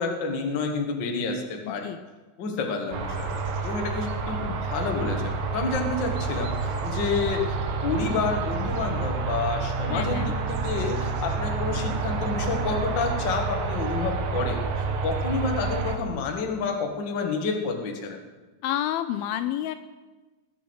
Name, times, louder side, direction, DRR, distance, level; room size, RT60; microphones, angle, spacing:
voice 1, 0.0-1.9 2.4-7.6 7.8-10.3 10.6-18.2, left 4 dB, 50° left, 3 dB, 1.4 m, -29 dB
voice 2, 1.6-2.0 9.9-10.3 18.6-19.8, left 11 dB, 80° left, 11 dB, 2.3 m, -29 dB
sound 1, 2.9-16.0, right 4 dB, 65° right, 2.7 m, -29 dB
19.5 x 9.2 x 6.2 m, 1.2 s
omnidirectional pair, 4.6 m